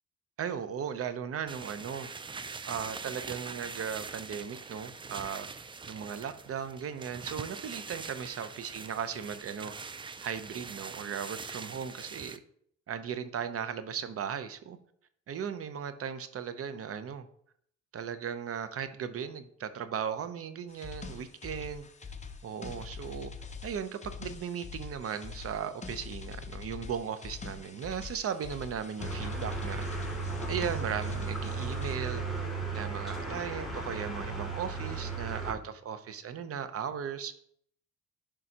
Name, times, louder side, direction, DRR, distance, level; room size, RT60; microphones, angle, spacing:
voice 1, 0.4-2.1 2.6-5.5 5.9-9.7 10.2-12.4 12.9-14.8 15.3-17.3 17.9-21.9 22.4-23.3 23.6-29.8 30.5-32.2 32.7-37.4, right 7 dB, 50° right, 11 dB, 0.7 m, -37 dB
sound 1, 1.5-12.4, right 4 dB, 15° right, 0.3 m, -43 dB
sound 2, 20.7-32.0, left 5 dB, 25° left, 0.7 m, -44 dB
sound 3, 29.0-35.5, right 3 dB, ahead, 2.4 m, -35 dB
11.0 x 3.8 x 2.8 m, 0.66 s
cardioid pair, 90°, 30 cm